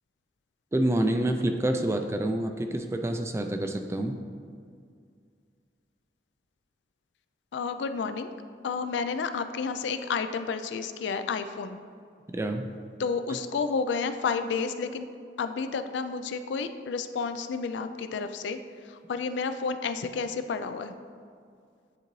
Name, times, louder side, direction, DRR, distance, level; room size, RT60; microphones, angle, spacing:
voice 1, 0.7-4.2 12.3-12.7 13.3-13.4, right 1 dB, 15° right, 5 dB, 0.3 m, -27 dB
voice 2, 7.5-8.3 8.6-11.8 13.0-15.1 15.4-18.6 18.9-20.9, left 5 dB, 85° left, 9 dB, 0.4 m, -31 dB
9.6 x 3.9 x 3.1 m, 2.2 s
head